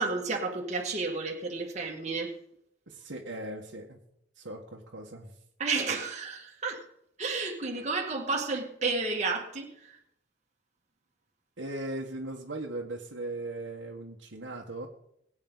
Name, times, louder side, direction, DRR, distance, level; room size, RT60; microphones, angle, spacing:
voice 1, 0.0-2.3 5.6-6.8 7.2-9.7, right 3 dB, 40° right, 1.9 m, -31 dB
voice 2, 2.9-4.0 4.4-5.4 11.6-14.9, right 2 dB, 80° right, 1.6 m, -38 dB
21.0 x 8.9 x 4.0 m
head